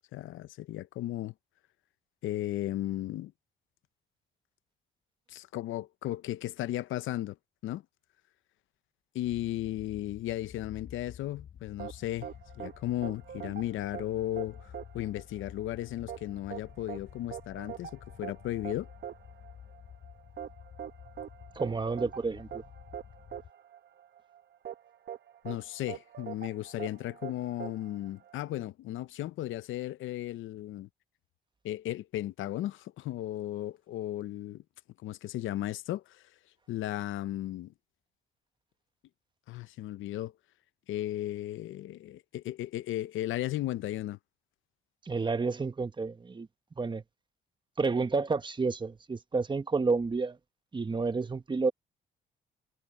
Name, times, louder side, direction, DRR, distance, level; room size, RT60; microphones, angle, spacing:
voice 1, 0.1-1.3 2.2-3.3 5.3-7.4 7.6-7.8 9.1-14.7 14.9-18.9 25.4-30.9 31.6-34.6 35.0-36.2 36.7-37.7 39.5-40.3 40.9-44.2, left 14 dB, 80° left, 0.7 m, -35 dB
sound 1, 9.2-23.5, left 8 dB, 60° left, 3.7 m, -51 dB
sound 2, 11.8-28.7, right 9 dB, 55° right, 1.0 m, -44 dB
voice 2, 21.5-22.6 45.0-46.5 46.8-47.0 47.8-50.4 50.7-51.7, right 4 dB, 25° right, 1.2 m, -30 dB
cardioid pair, 90°, 20 cm